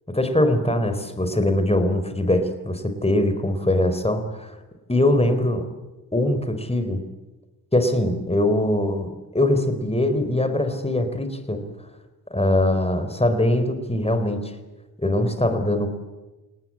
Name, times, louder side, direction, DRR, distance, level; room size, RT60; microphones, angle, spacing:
voice 1, 0.1-4.6 4.9-5.7 6.1-7.0 7.7-11.6 12.3-14.5 15.0-15.9, left 1 dB, 15° left, 9 dB, 4.5 m, -22 dB
28.0 x 18.5 x 8.8 m, 1.1 s
cardioid pair, 55°, 39 cm